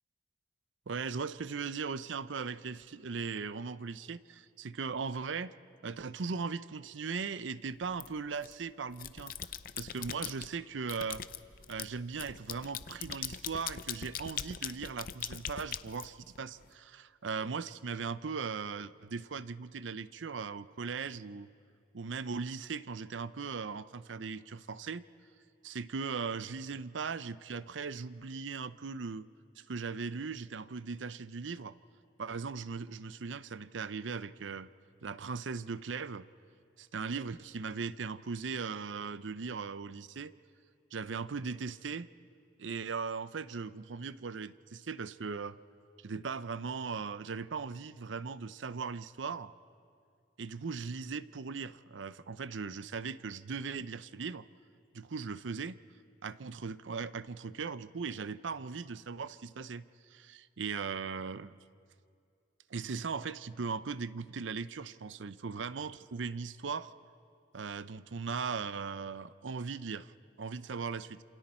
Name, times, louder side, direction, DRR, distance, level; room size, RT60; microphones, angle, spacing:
voice 1, 0.9-5.5 5.8-9.3 9.8-11.2 11.7-21.5 21.9-25.0 25.6-29.3 29.6-31.7 32.2-34.7 35.0-36.3 36.9-40.3 40.9-42.1 42.6-45.6 46.0-49.5 50.4-54.4 54.9-55.8 56.2-59.8 60.1-61.5 62.7-66.9 67.5-70.1 70.4-71.2, right 5 dB, 85° right, 15 dB, 0.6 m, -38 dB
sound 1, 8.0-8.5 8.9-10.5 10.9-16.6, left 9 dB, 50° left, 0.6 m, -41 dB
28.5 x 27.5 x 4.4 m, 2.4 s
head